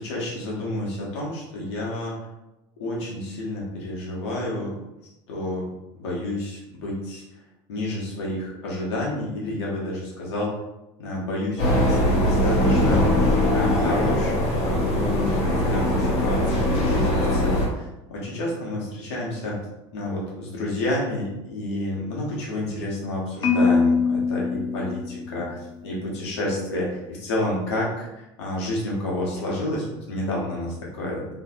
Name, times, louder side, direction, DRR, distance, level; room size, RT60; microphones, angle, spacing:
voice 1, 0.0-2.2 2.8-4.8 5.3-5.7 5.9-7.2 7.7-10.6 11.0-13.0 13.5-19.6 19.9-31.3, left 1 dB, 85° left, -4 dB, 1.1 m, -30 dB
sound 1, 11.6-17.7, left 1 dB, 55° left, 1.1 m, -21 dB
Marimba xylophone, 23.4-25.6, left 4 dB, 35° left, 0.6 m, -23 dB
3.1 x 2.6 x 2.4 m, 0.95 s
supercardioid pair, 95°, 14 cm